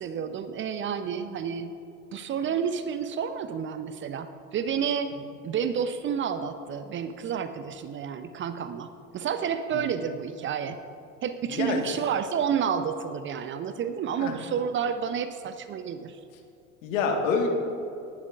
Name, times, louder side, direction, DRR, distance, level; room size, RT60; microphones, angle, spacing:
voice 1, 0.0-1.7 2.1-5.1 5.4-10.8 11.2-16.2, right 7 dB, 30° right, 11 dB, 0.5 m, -30 dB
voice 2, 11.5-11.8 14.2-14.3 16.8-17.5, left 5 dB, 65° left, 3 dB, 1.6 m, -27 dB
19.0 x 11.0 x 2.4 m, 2.6 s
figure-of-eight pair, 70°, 42 cm